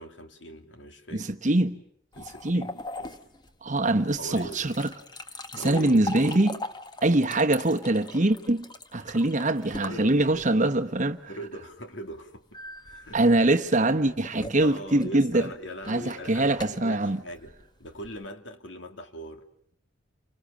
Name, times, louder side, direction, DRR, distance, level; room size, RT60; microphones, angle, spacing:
voice 1, 0.0-1.3 2.1-3.2 4.2-4.7 5.5-6.1 9.8-10.6 11.3-13.2 14.6-17.5 17.8-19.4, equal, 75° left, 2.6 m, -41 dB
voice 2, 1.1-1.7 2.4-2.7 3.6-4.9 5.5-6.6 7.0-11.2 13.1-15.5 15.9-17.2, right 2 dB, 40° right, 1.1 m, -23 dB
sound 1, 2.1-10.8 12.5-18.3, left 2 dB, 20° left, 1.2 m, -41 dB
29.5 x 26.0 x 7.3 m
head